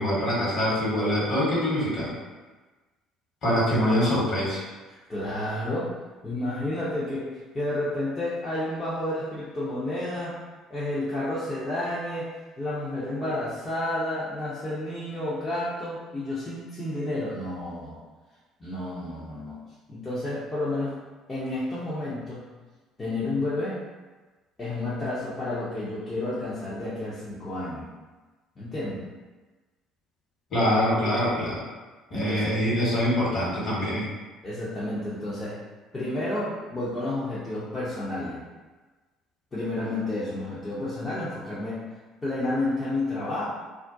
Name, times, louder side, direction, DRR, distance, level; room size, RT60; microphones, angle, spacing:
voice 1, 0.0-2.1 3.4-4.6 30.5-31.6 32.1-34.1, equal, 45° left, -7 dB, 1.3 m, -24 dB
voice 2, 4.9-5.9 6.2-10.4 10.7-12.3 12.6-18.0 18.6-19.6 19.9-21.0 21.3-22.5 23.0-23.8 24.6-27.9 28.6-29.1 32.1-32.5 34.4-35.6 35.9-38.4 39.5-41.8 42.2-43.4, left 1 dB, 30° left, -10 dB, 0.7 m, -30 dB
2.4 x 2.1 x 2.6 m, 1.2 s
figure-of-eight pair, 55°, 0 cm